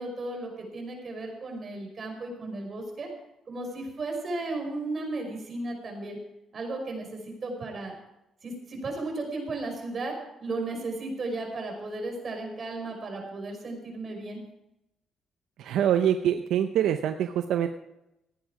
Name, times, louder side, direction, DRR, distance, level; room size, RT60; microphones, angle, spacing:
voice 1, 0.0-3.1 3.5-6.2 6.5-7.9 8.4-10.1 10.4-14.4, right 2 dB, 45° right, 2 dB, 5.4 m, -35 dB
voice 2, 15.6-17.7, right 10 dB, 80° right, 8 dB, 0.7 m, -25 dB
15.0 x 10.5 x 4.9 m, 0.87 s
cardioid pair, 90°, 0 cm